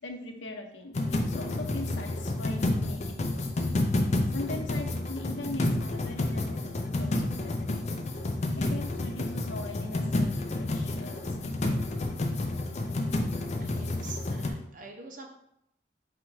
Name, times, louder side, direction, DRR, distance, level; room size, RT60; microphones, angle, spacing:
voice 1, 0.0-3.7 4.3-8.0 8.6-11.6 12.9-13.0, left 2 dB, 85° left, 5 dB, 0.6 m, -41 dB
sound 1, 0.9-14.5, left 2 dB, 40° left, 0.4 m, -30 dB
voice 2, 13.6-15.3, right 3 dB, 45° right, 2 dB, 0.7 m, -45 dB
4.1 x 2.5 x 4.6 m, 0.77 s
head